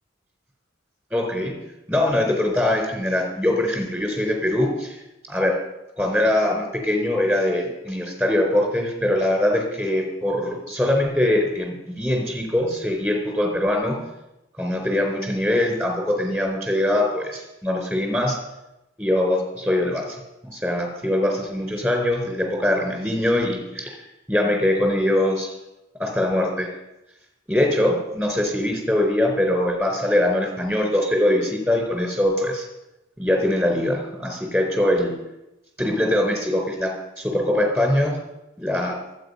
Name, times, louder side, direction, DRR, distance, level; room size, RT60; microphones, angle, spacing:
voice 1, 1.1-1.5 1.9-5.0 5.3-5.6 6.0-14.0 14.6-18.4 19.0-20.2 20.4-24.0 24.3-25.5 26.0-26.7 27.5-32.6 33.2-35.1 35.8-38.2 38.6-39.0, left 1 dB, 10° right, 2 dB, 4.2 m, -22 dB
23.5 x 9.0 x 5.6 m, 0.92 s
head